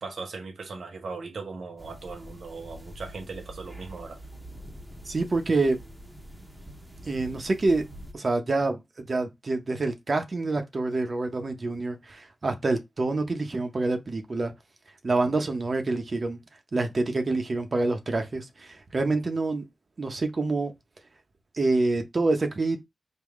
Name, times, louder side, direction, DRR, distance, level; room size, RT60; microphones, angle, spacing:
voice 1, 0.0-4.2, right 4 dB, 75° right, 0.9 m, -38 dB
sound 1, 1.8-8.1, right 1 dB, 5° right, 0.8 m, -45 dB
voice 2, 5.0-5.8 7.0-7.8 8.1-14.5 15.0-16.4 16.7-19.6 20.0-20.7 21.5-22.8, right 3 dB, 45° right, 0.7 m, -27 dB
3.6 x 2.2 x 3.5 m
cardioid pair, 65°, 0 cm